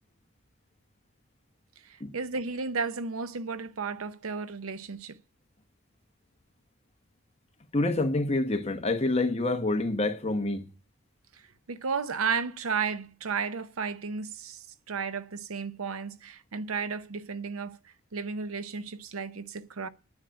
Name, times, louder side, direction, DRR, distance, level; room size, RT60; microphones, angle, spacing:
voice 1, 1.8-5.2 11.7-17.8 18.1-19.9, right 5 dB, 90° right, 0.7 m, -33 dB
voice 2, 7.7-10.7, left 2 dB, 30° left, 1.1 m, -27 dB
9.6 x 7.4 x 8.7 m
head